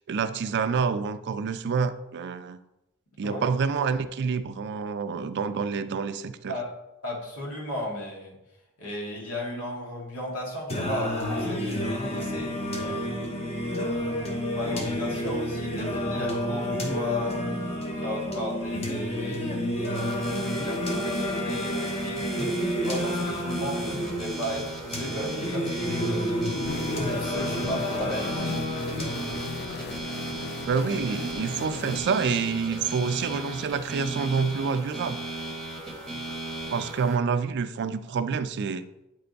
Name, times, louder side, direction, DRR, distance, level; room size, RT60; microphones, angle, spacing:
voice 1, 0.0-2.6 3.2-6.5 30.7-35.2 35.9-38.8, right 5 dB, 50° right, 11 dB, 0.4 m, -28 dB
voice 2, 7.0-8.4 8.8-13.2 13.8-17.4 18.0-26.4 26.9-28.7, left 1 dB, 90° left, -2 dB, 1.9 m, -35 dB
Singing, 10.7-29.7, equal, 30° left, 0.9 m, -30 dB
sound 1, 19.9-37.2, right 2 dB, ahead, 1.0 m, -36 dB
sound 2, 26.7-32.0, left 4 dB, 45° left, 0.4 m, -38 dB
8.4 x 3.4 x 3.9 m, 0.91 s
head